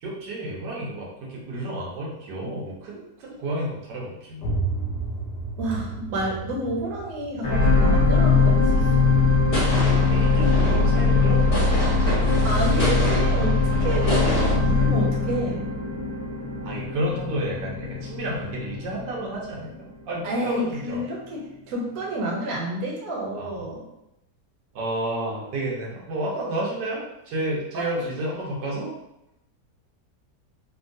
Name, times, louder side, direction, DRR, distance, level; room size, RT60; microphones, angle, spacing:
voice 1, 0.0-4.7 10.1-12.9 16.6-19.7 20.1-21.0 23.3-23.7 24.7-28.9, right 1 dB, 85° right, -4 dB, 1.5 m, -31 dB
sound 1, 4.4-10.0, right 3 dB, 75° left, 1.1 m, -33 dB
voice 2, 5.6-9.0 12.4-15.6 20.2-23.8 27.7-27.9, right 1 dB, 65° right, -2 dB, 1.1 m, -29 dB
sound 2, 7.4-19.8 20.4-20.5, left 3 dB, 50° left, 1.1 m, -21 dB
sound 3, 9.5-14.6, left 1 dB, 30° left, 0.6 m, -29 dB
3.5 x 2.2 x 2.6 m, 0.85 s
omnidirectional pair, 1.8 m